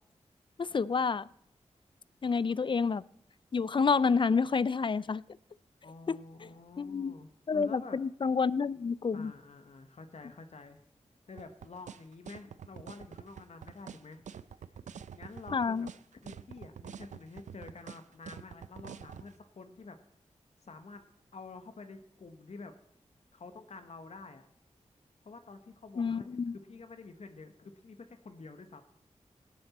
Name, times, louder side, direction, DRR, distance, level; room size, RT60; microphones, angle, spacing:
voice 1, 0.6-1.3 2.2-3.0 3.5-5.2 6.1-6.2 6.8-7.1 7.5-9.3 15.5-15.9 26.0-26.6, left 5 dB, 45° left, 20 dB, 0.4 m, -29 dB
voice 2, 5.8-8.0 9.1-10.8 11.3-14.2 15.1-15.9 16.2-20.0 20.6-21.1 21.3-22.7 23.3-24.5 25.2-28.8, left 3 dB, 65° left, 8 dB, 1.2 m, -49 dB
sound 1, 11.4-19.3, right 7 dB, 90° right, 0.5 m, -46 dB
18.5 x 7.7 x 4.2 m, 0.70 s
cardioid pair, 50°, 12 cm